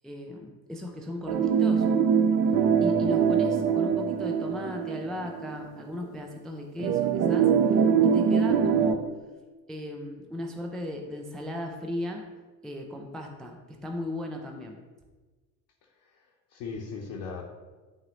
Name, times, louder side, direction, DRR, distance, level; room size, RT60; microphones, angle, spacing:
voice 1, 0.0-1.9 2.8-7.5 8.0-9.0 9.7-12.2 12.6-14.8, left 1 dB, ahead, 2 dB, 0.3 m, -37 dB
sound 1, 1.3-5.6 6.0-6.1 6.8-8.9, right 7 dB, 40° right, 0.6 m, -23 dB
voice 2, 15.8-17.4, left 5 dB, 45° left, 0 dB, 1.0 m, -39 dB
11.0 x 3.7 x 3.0 m, 1.3 s
figure-of-eight pair, 65°, 50 cm